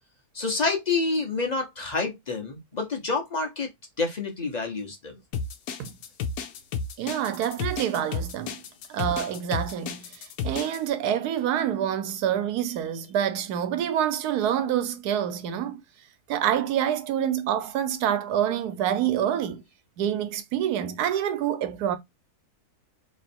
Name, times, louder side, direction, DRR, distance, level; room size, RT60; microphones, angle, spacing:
voice 1, 0.3-3.7 4.0-5.2, left 3 dB, 35° left, 0.8 m, -28 dB
sound 1, 5.3-10.8, left 5 dB, 80° left, 1.2 m, -32 dB
voice 2, 7.0-8.6 8.9-15.8 16.3-19.6 20.0-22.0, right 10 dB, 85° right, 1.1 m, -27 dB
3.1 x 3.1 x 4.3 m
omnidirectional pair, 1.6 m